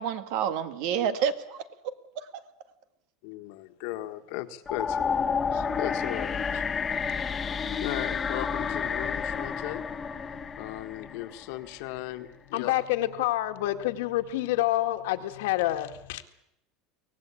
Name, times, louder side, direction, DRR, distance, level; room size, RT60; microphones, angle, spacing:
voice 1, 0.0-2.3, right 8 dB, 60° right, 10 dB, 1.8 m, -30 dB
voice 2, 3.2-6.6 7.4-7.5 7.8-9.8 10.6-12.7, left 16 dB, 65° left, 9 dB, 1.6 m, -37 dB
sound 1, 4.7-11.8, left 6 dB, 20° left, 1.1 m, -30 dB
voice 3, 10.4-11.2 12.5-16.2, left 15 dB, 85° left, 7 dB, 1.8 m, -28 dB
24.0 x 18.0 x 8.5 m, 0.82 s
supercardioid pair, 150°, 0 cm